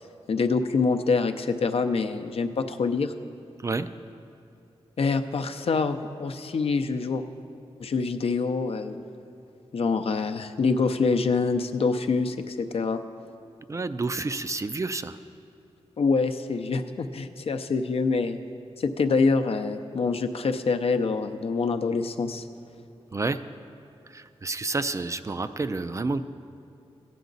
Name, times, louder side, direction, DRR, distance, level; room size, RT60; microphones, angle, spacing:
voice 1, 0.3-3.1 5.0-7.2 7.8-9.0 9.7-13.0 16.0-18.4 18.8-22.4, left 4 dB, 65° left, 8 dB, 0.5 m, -25 dB
voice 2, 13.7-15.2 23.1-23.4 24.1-26.2, right 3 dB, 30° right, 12 dB, 0.3 m, -29 dB
14.5 x 9.3 x 3.9 m, 2.6 s
wide cardioid pair, 90°, 11 cm